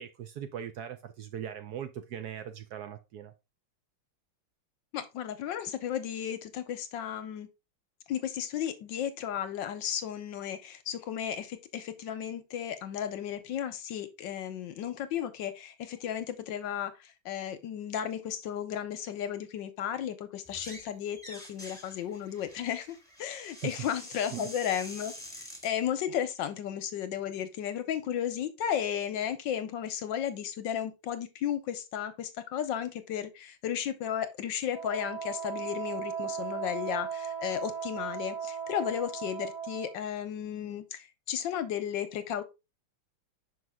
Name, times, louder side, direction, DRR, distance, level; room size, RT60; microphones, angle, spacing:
voice 1, 0.0-3.3 23.6-23.7 24.3-24.5, right 9 dB, 75° right, 0.9 m, -40 dB
voice 2, 4.9-7.5 8.1-25.1 25.6-42.4, left 9 dB, 70° left, 1.3 m, -34 dB
sound 1, 20.4-20.9 21.1-25.7, left 1 dB, ahead, 1.8 m, -46 dB
Wind instrument woodwind instrument, 34.7-40.0, right 7 dB, 55° right, 1.7 m, -37 dB
5.6 x 5.3 x 3.5 m
omnidirectional pair, 2.3 m